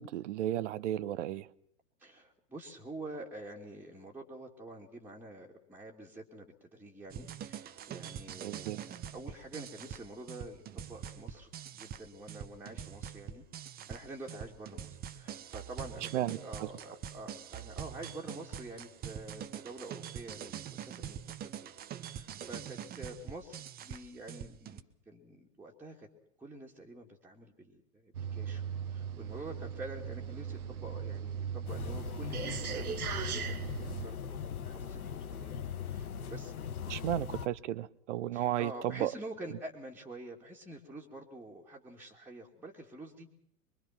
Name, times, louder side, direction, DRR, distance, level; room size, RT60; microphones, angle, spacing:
voice 1, 0.0-1.5 8.4-8.8 16.1-16.7 36.9-39.1, right 13 dB, 50° right, 18 dB, 1.0 m, -34 dB
voice 2, 2.0-21.2 21.6-21.7 22.0-26.1 26.4-36.5 38.3-43.3, right 2 dB, 5° right, -2 dB, 2.7 m, -47 dB
sound 1, 7.1-24.8, right 9 dB, 20° right, 1.1 m, -44 dB
sound 2, 28.1-34.1, right 8 dB, 70° right, 1.3 m, -38 dB
sound 3, 31.7-37.5, left 7 dB, 70° left, 1.4 m, -40 dB
24.0 x 23.5 x 6.0 m, 0.67 s
figure-of-eight pair, 100°, 46 cm